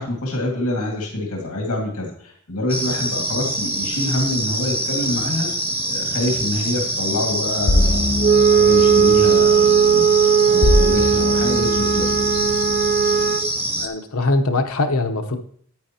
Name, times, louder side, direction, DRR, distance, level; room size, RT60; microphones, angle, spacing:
voice 1, 0.0-5.5 5.9-12.5, left 1 dB, 90° left, 0 dB, 2.0 m, -26 dB
sound 1, 2.7-13.9, right 1 dB, 10° right, 0.9 m, -25 dB
sound 2, 7.7-13.3, left 2 dB, 30° left, 0.5 m, -23 dB
Wind instrument woodwind instrument, 8.2-13.5, right 8 dB, 45° right, 0.5 m, -17 dB
voice 2, 13.8-15.4, left 2 dB, 70° left, 6 dB, 1.0 m, -21 dB
10.5 x 8.7 x 2.9 m, 0.62 s
head